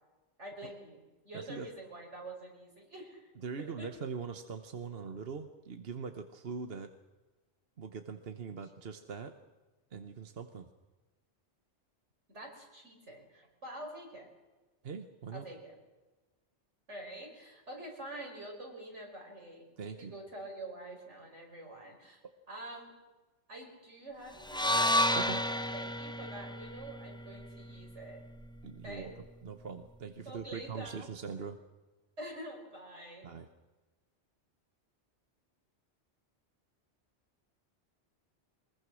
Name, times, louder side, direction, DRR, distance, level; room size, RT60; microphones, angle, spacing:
voice 1, 0.4-3.3 3.8-3.9 12.3-14.3 15.3-15.8 16.9-22.2 22.5-22.9 23.5-24.4 24.6-25.4 25.7-28.2 28.8-29.2 30.3-31.1 32.2-33.3, right 1 dB, 85° right, 1 dB, 5.8 m, -46 dB
voice 2, 1.3-1.7 3.4-6.9 7.8-9.3 9.9-10.7 14.8-15.4 19.8-20.1 25.2-25.4 28.6-31.6 33.2-33.5, right 5 dB, 60° right, 7 dB, 1.2 m, -42 dB
sound 1, 24.4-28.6, left 1 dB, 5° left, 0.7 m, -32 dB
24.0 x 21.5 x 6.3 m, 1.2 s
omnidirectional pair, 1.2 m